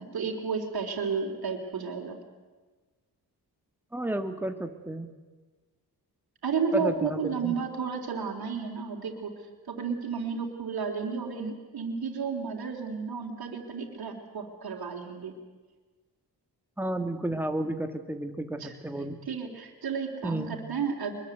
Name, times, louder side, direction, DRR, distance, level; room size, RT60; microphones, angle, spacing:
voice 1, 0.0-2.2 6.4-9.3 9.7-15.3 18.6-18.7 19.3-21.1, right 5 dB, 65° right, 0 dB, 3.8 m, -32 dB
voice 2, 3.9-5.1 6.7-7.6 16.8-19.2 20.2-20.5, right 1 dB, 5° right, 6 dB, 2.1 m, -32 dB
23.5 x 22.5 x 8.2 m, 1.3 s
cardioid pair, 90°, 39 cm